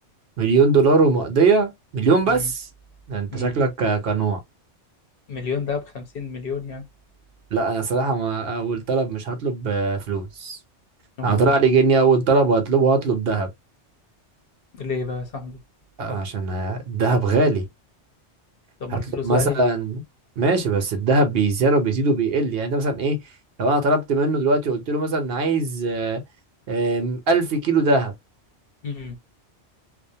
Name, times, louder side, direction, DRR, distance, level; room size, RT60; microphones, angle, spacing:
voice 1, 0.4-2.7 3.1-4.4 7.5-10.6 11.2-13.5 16.0-17.7 18.9-20.0 20.4-23.2 23.6-26.2 26.7-28.1, right 3 dB, 60° right, 0.8 m, -21 dB
voice 2, 5.3-6.8 11.2-11.5 14.7-15.6 18.8-19.6 28.8-29.2, left 5 dB, 55° left, 0.9 m, -30 dB
2.4 x 2.1 x 2.6 m
omnidirectional pair, 1.2 m